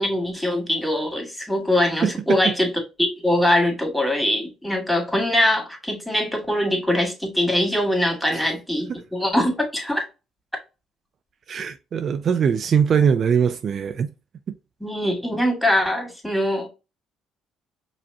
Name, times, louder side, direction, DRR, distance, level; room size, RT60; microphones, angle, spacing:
voice 1, 0.0-2.7 3.0-10.0 14.8-16.7, left 1 dB, 5° left, 2.2 m, -22 dB
voice 2, 2.0-2.5 8.3-8.4 8.9-9.0 11.5-14.1, right 7 dB, 55° right, 0.5 m, -21 dB
5.2 x 3.1 x 2.7 m
supercardioid pair, 75°, 0 cm